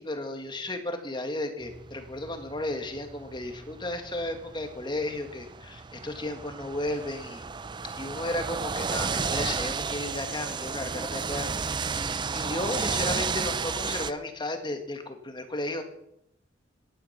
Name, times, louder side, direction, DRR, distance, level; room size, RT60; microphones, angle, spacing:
voice 1, 0.0-7.4 8.0-11.5 11.9-15.8, left 1 dB, 25° left, 6 dB, 1.8 m, -34 dB
sound 1, 1.6-14.1, right 5 dB, 25° right, 0.5 m, -33 dB
16.0 x 11.5 x 5.8 m, 0.77 s
head